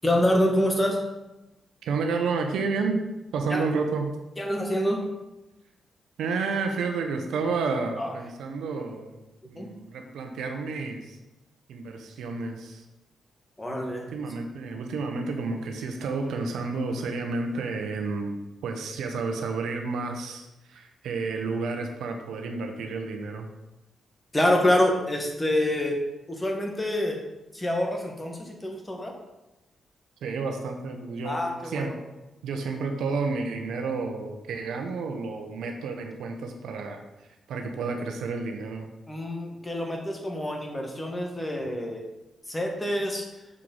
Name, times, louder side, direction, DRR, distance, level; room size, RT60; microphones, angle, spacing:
voice 1, 0.0-1.0 3.5-3.6 4.4-5.1 8.0-8.1 9.6-9.7 13.6-14.1 24.3-27.2 27.5-29.1 31.2-31.9 39.1-42.1 42.5-43.2, left 1 dB, 20° left, 1 dB, 1.8 m, -26 dB
voice 2, 1.8-3.0 3.3-4.1 6.2-9.2 9.4-11.2 11.7-12.8 14.1-23.5 30.2-32.0 32.4-37.0 37.5-38.9, right 4 dB, 85° right, 4 dB, 1.0 m, -30 dB
6.6 x 4.9 x 5.5 m, 0.99 s
cardioid pair, 70°, 0 cm